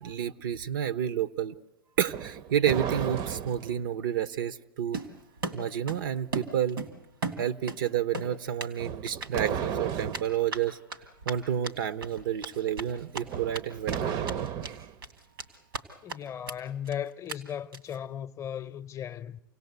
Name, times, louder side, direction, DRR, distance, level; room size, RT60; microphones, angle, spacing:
voice 1, 0.0-1.5 2.0-5.0 5.5-6.8 7.4-10.8 11.3-14.3, right 9 dB, 70° right, 0.9 m, -30 dB
sound 1, 2.0-3.8 8.8-10.4 13.2-14.9, right 8 dB, 45° right, 0.8 m, -34 dB
Run, 4.9-6.0 6.3-7.8 8.1-8.7 9.1-9.3 10.1-13.6 13.9-14.0 14.2-14.7 15.0-15.8 16.1-16.2 16.5-16.6 16.8-16.9 17.3-17.4 17.7-18.0, right 4 dB, 85° right, 2.3 m, -36 dB
voice 2, 16.0-19.4, left 9 dB, 25° left, 0.8 m, -36 dB
27.5 x 18.0 x 8.1 m
hypercardioid pair, 105°, 11 cm